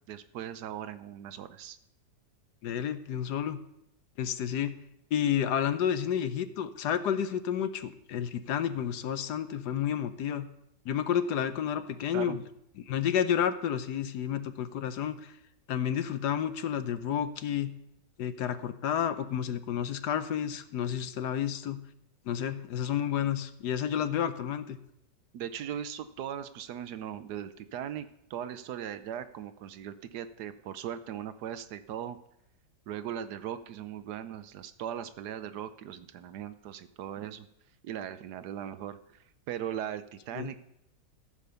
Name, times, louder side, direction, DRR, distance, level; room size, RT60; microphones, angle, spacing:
voice 1, 0.1-1.8 12.1-12.4 25.3-32.2 32.9-37.5 37.8-40.6, right 10 dB, 70° right, 12 dB, 1.2 m, -39 dB
voice 2, 2.6-3.6 4.2-4.7 5.1-10.5 10.8-12.4 12.9-15.3 15.7-17.7 18.2-21.8 22.3-24.8 40.3-40.5, left 9 dB, 75° left, 11 dB, 1.3 m, -30 dB
14.0 x 5.2 x 6.8 m, 0.79 s
omnidirectional pair, 1.9 m